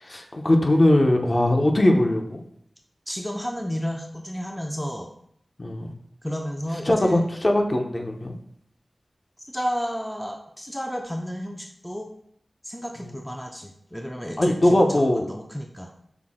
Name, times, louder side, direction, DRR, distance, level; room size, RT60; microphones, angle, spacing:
voice 1, 0.0-2.4 5.6-5.9 6.9-8.4 14.4-15.2, left 1 dB, 40° left, 2 dB, 0.7 m, -20 dB
voice 2, 3.1-5.1 6.2-7.3 9.5-12.1 12.6-15.9, equal, 5° left, 2 dB, 0.4 m, -32 dB
5.8 x 2.1 x 3.6 m, 0.71 s
wide cardioid pair, 75°, 0 cm